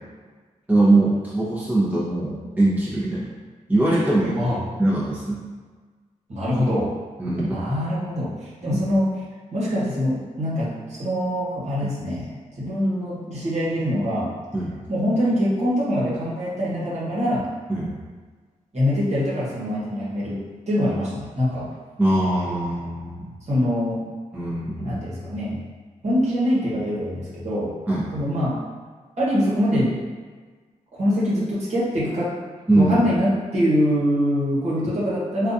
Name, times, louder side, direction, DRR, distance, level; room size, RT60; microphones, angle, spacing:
voice 1, 0.7-3.3 3.7-4.4 4.8-5.4 7.2-7.7 8.6-8.8 11.8-11.9 14.5-14.8 17.7-17.9 22.0-23.3 24.3-25.0 27.9-28.1 32.7-33.0, right 2 dB, 10° right, -9 dB, 0.9 m, -21 dB
voice 2, 6.3-6.9 7.5-9.1 9.5-14.3 14.9-17.5 18.7-20.4 20.7-21.7 23.4-24.1 24.8-25.6 26.0-27.7 28.1-28.6 29.2-30.0 30.9-32.3 32.7-35.5, equal, 55° right, -8 dB, 1.2 m, -24 dB
3.9 x 2.5 x 2.6 m, 1.4 s
cardioid pair, 85°, 13 cm